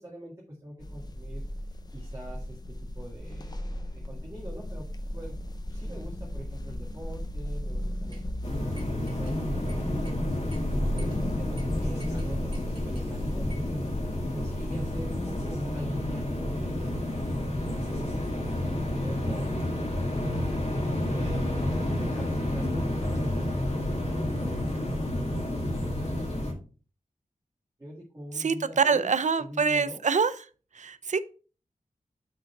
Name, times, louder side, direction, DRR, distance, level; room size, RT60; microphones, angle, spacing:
voice 1, 0.0-1.4 1.9-2.6 2.9-5.4 5.6-20.5 21.1-25.8 27.8-29.1 29.4-30.0, right 1 dB, 20° right, -4 dB, 1.9 m, -43 dB
sound 1, 0.8-19.1, left 1 dB, 30° left, 0.8 m, -36 dB
sound 2, 8.1-8.3 8.7-9.4 9.7-10.2 10.5-10.6 11.0-11.2 11.6-11.7 12.0-13.1 13.5-13.7, right 1 dB, 40° right, 1.7 m, -51 dB
sound 3, 8.4-26.5, left 1 dB, 50° left, 1.8 m, -30 dB
voice 2, 28.4-30.3 30.7-31.2, right 5 dB, 60° right, 15 dB, 0.5 m, -25 dB
6.2 x 3.9 x 5.8 m, 0.37 s
wide cardioid pair, 105°, 14 cm